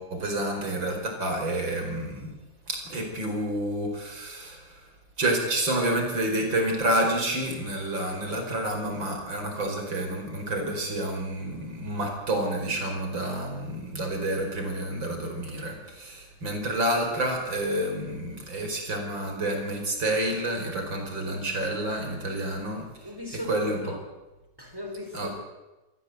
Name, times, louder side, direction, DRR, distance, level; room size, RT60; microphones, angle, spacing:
voice 1, 0.0-2.3 2.7-4.9 5.2-23.1 23.5-23.9 25.1-25.4, right 1 dB, 60° right, 3 dB, 5.4 m, -29 dB
voice 2, 23.0-24.0 24.6-25.4, left 1 dB, 10° right, 2 dB, 5.1 m, -38 dB
27.0 x 15.0 x 8.0 m, 1.1 s
omnidirectional pair, 2.4 m